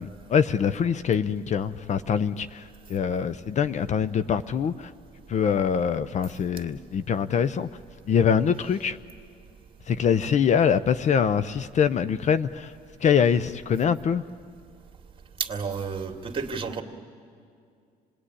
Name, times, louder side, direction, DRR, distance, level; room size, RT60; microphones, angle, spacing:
voice 1, 0.0-4.9 5.3-7.7 8.1-9.0 9.9-12.7 13.0-14.2, left 7 dB, 45° left, 14 dB, 0.6 m, -24 dB
voice 2, 15.4-16.8, right 5 dB, 30° right, 4 dB, 2.3 m, -31 dB
27.5 x 20.0 x 9.9 m, 2.3 s
cardioid pair, 110°, 17 cm